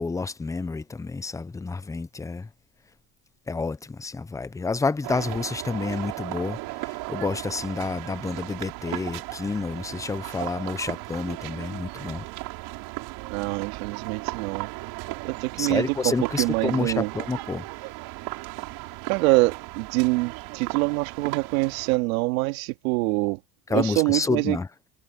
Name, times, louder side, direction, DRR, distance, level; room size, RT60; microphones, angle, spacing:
voice 1, 0.0-2.5 3.5-12.3 15.6-17.6 23.7-24.7, left 4 dB, 10° left, 0.7 m, -29 dB
sound 1, 5.0-22.0, right 22 dB, 65° right, 6.4 m, -36 dB
voice 2, 13.3-14.7 15.2-16.1 16.4-17.1 19.0-23.4 23.7-24.6, right 23 dB, 85° right, 2.4 m, -25 dB
cardioid pair, 135°, 40 cm